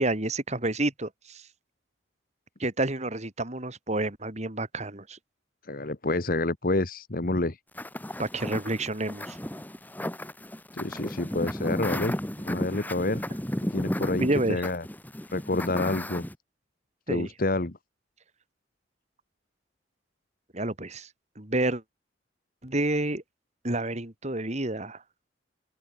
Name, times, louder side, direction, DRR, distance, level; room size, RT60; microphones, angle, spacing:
voice 1, 0.0-1.5 2.6-5.2 8.2-9.4 14.2-14.6 17.1-17.3 20.5-21.1 21.4-21.8 22.6-23.2 23.6-25.0, right 2 dB, 40° right, 3.2 m, -29 dB
voice 2, 5.7-7.6 10.7-13.2 13.7-14.8 15.3-16.2 17.1-17.8, left 2 dB, 50° left, 1.4 m, -28 dB
sound 1, 7.7-16.3, left 1 dB, 10° left, 1.4 m, -33 dB
open air
head